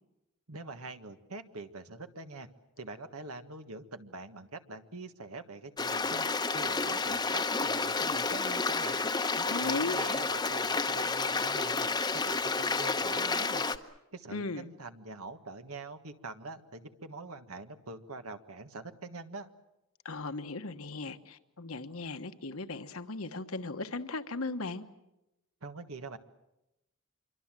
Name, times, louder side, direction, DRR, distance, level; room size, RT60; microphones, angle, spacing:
voice 1, 0.5-2.5 2.8-6.3 6.5-9.0 9.4-11.9 12.1-13.6 14.1-19.5 25.6-26.2, right 3 dB, 85° right, 8 dB, 1.6 m, -44 dB
Stream, 5.8-13.8, left 4 dB, 20° left, 0.9 m, -30 dB
voice 2, 9.3-10.0 14.3-14.7 20.0-24.8, left 3 dB, 75° left, 9 dB, 1.3 m, -37 dB
26.5 x 24.0 x 7.6 m, 0.92 s
head